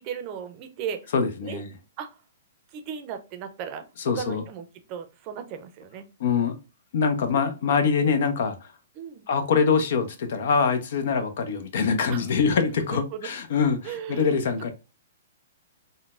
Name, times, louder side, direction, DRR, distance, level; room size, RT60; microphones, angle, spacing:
voice 1, 0.0-1.1 1.4-1.6 2.0-2.1 2.7-3.8 4.1-6.1 8.9-9.3 12.1-12.3 12.7-13.3 13.8-14.4, right 8 dB, 40° right, 0.6 m, -36 dB
voice 2, 1.1-1.7 4.1-4.4 6.2-6.5 6.9-8.6 9.3-14.7, left 5 dB, 65° left, 0.6 m, -24 dB
3.8 x 2.1 x 2.4 m
hypercardioid pair, 130°, 0 cm